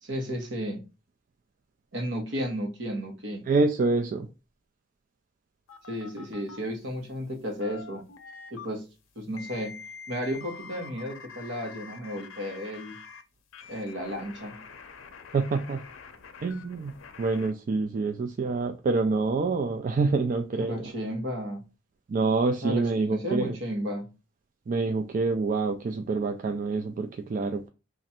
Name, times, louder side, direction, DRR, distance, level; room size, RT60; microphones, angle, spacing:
voice 1, 0.0-0.8 1.9-3.4 5.9-8.0 8.5-8.8 9.1-9.8 10.1-12.9 13.7-14.6 20.6-21.6 22.6-24.1, equal, 65° right, 1.2 m, -33 dB
voice 2, 3.5-4.3 15.3-15.8 16.4-16.9 17.2-20.9 22.1-23.6 24.7-27.7, right 3 dB, 40° right, 0.3 m, -26 dB
sound 1, 5.7-6.6 7.3-8.7 9.4-13.2 13.5-17.5, left 5 dB, 80° left, 0.5 m, -46 dB
3.1 x 2.5 x 4.2 m
head